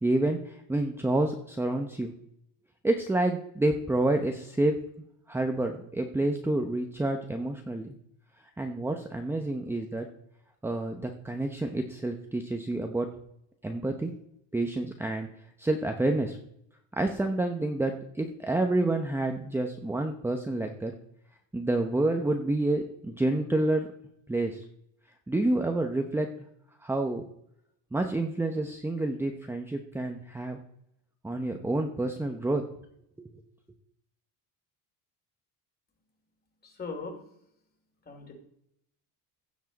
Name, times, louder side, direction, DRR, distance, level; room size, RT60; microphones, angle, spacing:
voice 1, 0.0-2.1 2.8-4.8 5.3-8.0 8.6-10.1 10.6-13.1 13.6-14.1 14.5-15.3 15.6-16.4 17.0-20.9 21.5-23.9 24.3-24.6 25.3-26.3 26.8-27.2 27.9-30.6 31.2-32.6 33.2-33.3, right 2 dB, 5° right, 4 dB, 0.8 m, -28 dB
voice 2, 36.6-37.1 38.0-38.3, left 4 dB, 25° left, 3 dB, 3.0 m, -39 dB
15.5 x 7.4 x 4.1 m, 0.73 s
cardioid pair, 135°, 36 cm